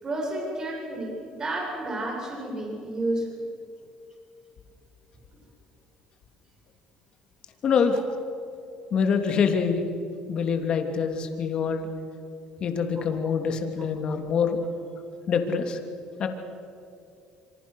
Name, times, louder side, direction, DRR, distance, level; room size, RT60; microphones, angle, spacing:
voice 1, 0.0-3.5, right 1 dB, 30° right, -1 dB, 7.7 m, -31 dB
voice 2, 7.6-8.0 8.9-9.9 10.3-11.9 12.6-14.6 15.3-15.8 16.2-16.3, left 6 dB, 50° left, 5 dB, 2.9 m, -25 dB
27.0 x 25.0 x 6.5 m, 2.6 s
cardioid pair, 105°, 2 cm